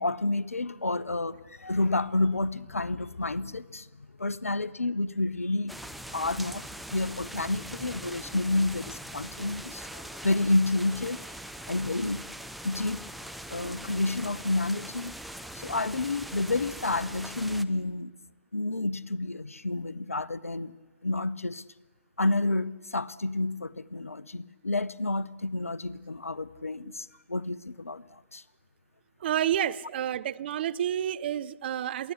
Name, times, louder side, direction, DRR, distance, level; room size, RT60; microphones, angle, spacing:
voice 1, 0.0-3.9 4.2-5.7 6.1-6.6 6.9-11.2 11.7-12.2 12.6-13.0 13.5-15.1 15.5-18.1 18.5-20.7 21.0-21.6 22.2-28.4, left 2 dB, 85° left, 20 dB, 0.7 m, -29 dB
sound 1, 5.7-17.6, right 1 dB, ahead, 0.7 m, -42 dB
voice 2, 29.2-32.1, right 10 dB, 50° right, 17 dB, 0.7 m, -29 dB
22.5 x 16.5 x 8.3 m, 1.4 s
figure-of-eight pair, 125°, 7 cm